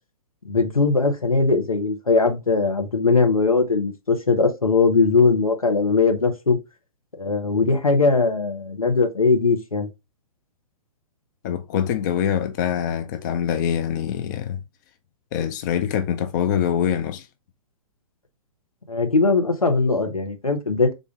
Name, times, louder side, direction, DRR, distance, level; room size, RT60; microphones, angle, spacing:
voice 1, 0.4-6.6 7.2-9.9 18.9-20.9, left 4 dB, 85° left, 0.9 m, -20 dB
voice 2, 11.4-14.6 15.3-17.3, left 9 dB, 35° left, 0.4 m, -24 dB
3.8 x 2.5 x 3.6 m
figure-of-eight pair, 115°, 18 cm